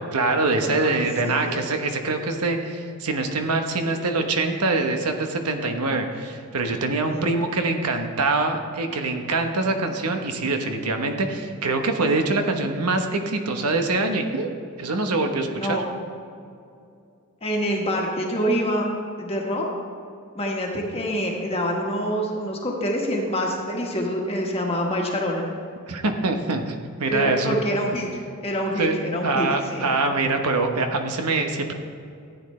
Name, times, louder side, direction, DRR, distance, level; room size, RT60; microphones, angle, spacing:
voice 1, 0.1-14.5 14.8-15.8 25.9-27.6 28.8-29.0 29.2-31.7, right 3 dB, 90° right, 5 dB, 1.0 m, -24 dB
voice 2, 0.6-1.6 7.1-7.2 15.6-15.9 17.4-18.9 19.2-19.6 20.3-25.4 27.1-29.5 29.7-29.8, equal, 25° left, -1 dB, 1.3 m, -26 dB
14.5 x 9.1 x 3.2 m, 2.5 s
head